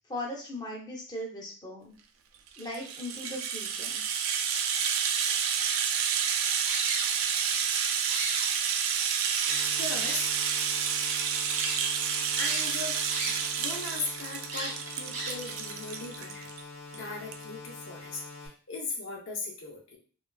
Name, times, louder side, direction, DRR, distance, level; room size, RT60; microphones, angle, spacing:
voice 1, 0.1-1.9 2.6-4.0, left 1 dB, 20° left, -4 dB, 0.7 m, -38 dB
Rattle (instrument), 2.5-16.6 16.9-17.0 17.3-17.4, right 7 dB, 85° right, 0.3 m, -29 dB
sound 1, 6.6-7.6 7.9-9.0 9.4-10.4 11.0-11.1 11.5-11.8 12.4-13.6 13.9-14.0 14.5-15.6, right 2 dB, 35° right, 0.6 m, -37 dB
sound 2, 9.5-18.5, left 3 dB, 90° left, 1.0 m, -45 dB
voice 2, 9.8-10.3 12.4-16.5 16.9-20.0, left 3 dB, 70° left, 0 dB, 0.6 m, -38 dB
3.1 x 2.3 x 2.3 m, 0.39 s
head